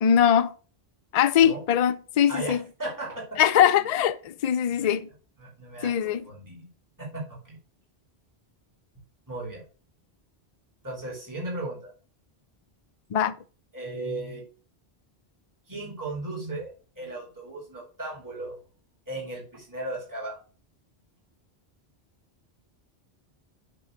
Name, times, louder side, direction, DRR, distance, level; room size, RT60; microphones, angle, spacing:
voice 1, 0.0-0.5 1.1-2.6 3.4-5.1 5.8-6.2 13.1-13.4, left 9 dB, 50° left, 0.5 m, -21 dB
voice 2, 2.3-3.9 4.7-4.9 5.4-6.7 7.0-7.6 9.3-9.6 10.8-11.9 13.7-14.4 15.7-18.5 19.1-20.4, right 2 dB, 20° right, 3.2 m, -36 dB
7.8 x 3.9 x 6.5 m
omnidirectional pair, 1.1 m